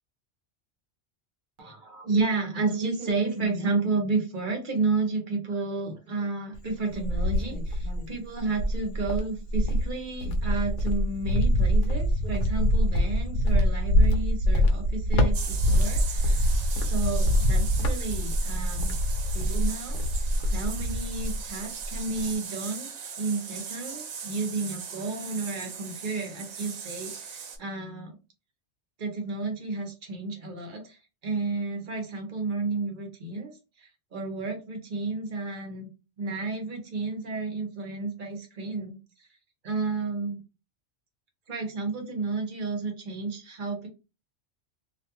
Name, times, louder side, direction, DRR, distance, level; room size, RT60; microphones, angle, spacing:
voice 1, 1.6-16.6 16.8-19.0 19.3-20.0 20.5-22.9 23.2-28.2 29.0-33.5 33.8-35.9 36.2-39.3 39.6-40.4 41.5-43.9, right 3 dB, 50° right, 3 dB, 0.9 m, -31 dB
Cricket, 6.5-8.1 8.5-21.5 21.8-22.3, equal, 85° left, 0.9 m, -24 dB
sound 1, 15.3-27.6, right 6 dB, 85° right, 1.0 m, -39 dB
2.5 x 2.3 x 2.8 m, 0.30 s
omnidirectional pair, 1.2 m